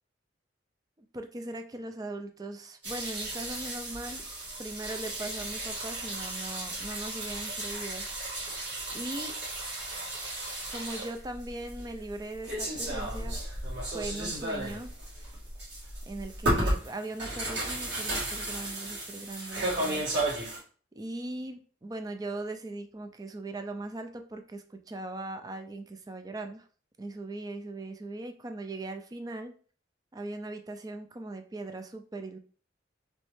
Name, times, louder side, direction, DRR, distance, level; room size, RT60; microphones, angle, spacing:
voice 1, 1.1-4.2 4.6-8.1 8.9-9.3 10.7-13.4 13.9-14.9 16.1-20.3 21.0-26.7 27.0-29.5 30.1-32.4, right 2 dB, 20° right, 7 dB, 0.3 m, -39 dB
sound 1, 2.8-20.6, right 1 dB, 65° right, 1.8 m, -34 dB
3.2 x 3.1 x 3.1 m, 0.43 s
head